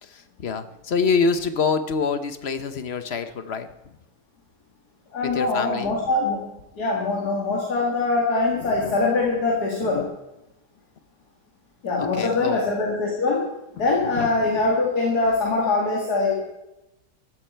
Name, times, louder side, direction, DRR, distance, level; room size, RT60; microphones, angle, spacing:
voice 1, 0.0-3.7 5.2-6.0 8.6-9.0 9.8-9.9 12.0-12.6 14.1-14.6, left 5 dB, 45° left, 10 dB, 1.0 m, -26 dB
voice 2, 5.1-6.4 6.8-10.1 11.8-13.5 13.7-16.4, left 3 dB, 65° left, -2 dB, 2.7 m, -23 dB
15.0 x 13.0 x 4.5 m, 0.94 s
omnidirectional pair, 1.8 m